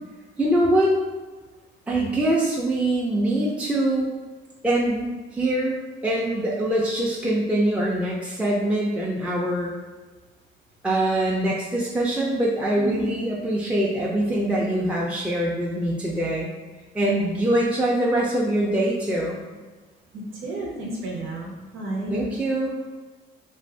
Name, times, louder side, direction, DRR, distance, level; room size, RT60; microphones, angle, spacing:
voice 1, 0.4-1.0 1.9-4.1 4.6-5.1 5.3-5.8 6.0-9.7 10.8-16.5 16.9-19.4 22.1-23.0, right 1 dB, 5° right, -5 dB, 0.5 m, -23 dB
voice 2, 20.1-22.2, right 2 dB, 90° right, -2 dB, 0.9 m, -32 dB
2.6 x 2.3 x 3.3 m, 1.3 s
cardioid pair, 90°, 20 cm